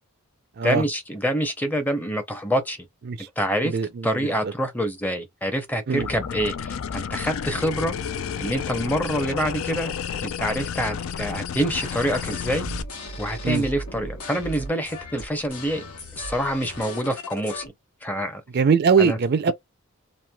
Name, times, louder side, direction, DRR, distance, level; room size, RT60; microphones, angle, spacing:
voice 1, 0.6-2.8 3.4-3.8 4.0-7.9 8.4-9.9 10.2-12.7 13.2-15.8 16.2-17.6 18.0-18.4 19.0-19.2, equal, 10° left, 0.6 m, -26 dB
voice 2, 3.6-4.5 5.9-6.1 13.4-13.7 18.5-19.5, right 5 dB, 50° right, 0.4 m, -22 dB
sound 1, 6.0-12.8, left 7 dB, 65° left, 0.4 m, -31 dB
sound 2, 11.7-17.7, left 1 dB, 85° left, 1.2 m, -37 dB
3.1 x 2.7 x 2.2 m
head